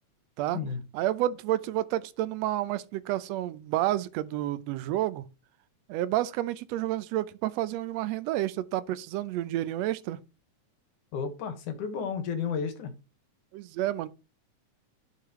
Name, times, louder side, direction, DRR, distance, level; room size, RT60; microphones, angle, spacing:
voice 1, 0.9-5.2 5.9-10.2 13.5-14.1, right 14 dB, 75° right, 1.6 m, -30 dB
voice 2, 11.1-12.9, left 6 dB, 75° left, 3.0 m, -32 dB
11.5 x 6.7 x 3.1 m
omnidirectional pair, 3.6 m